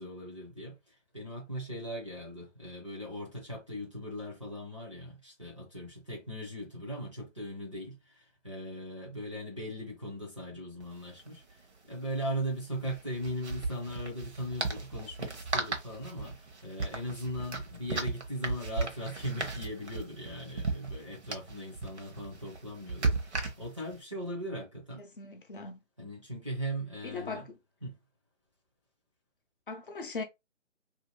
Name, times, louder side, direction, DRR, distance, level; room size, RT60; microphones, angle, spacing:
voice 1, 0.0-11.6 11.9-25.0 26.0-27.5 27.8-28.0, equal, 25° right, 0.6 m, -39 dB
sound 1, 10.8-10.9 11.1-11.3 12.8-24.0, right 3 dB, 60° right, 0.9 m, -36 dB
voice 2, 25.0-25.8 27.0-27.5 29.7-30.2, left 4 dB, 45° left, 0.6 m, -39 dB
2.7 x 2.3 x 2.8 m
figure-of-eight pair, 160°, 38 cm